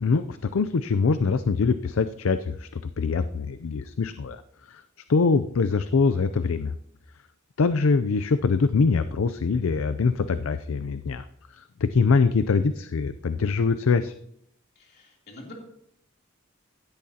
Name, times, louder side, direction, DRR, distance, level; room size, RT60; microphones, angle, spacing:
voice 1, 0.0-4.4 4.7-4.8 5.1-6.7 7.6-11.2 11.5-14.1, left 4 dB, 75° left, 12 dB, 0.5 m, -23 dB
voice 2, 14.7-15.5, left 2 dB, 50° left, -2 dB, 3.1 m, -46 dB
16.5 x 12.5 x 2.8 m, 0.75 s
head